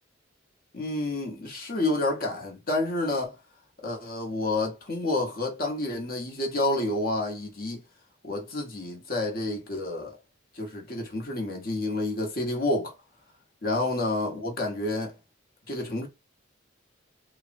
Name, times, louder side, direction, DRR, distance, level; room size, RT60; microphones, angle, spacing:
voice 1, 0.7-3.4 3.8-7.8 8.2-10.2 10.5-12.9 13.6-15.1 15.7-16.1, left 2 dB, 45° left, 0.9 m, -29 dB
3.3 x 2.0 x 2.5 m
head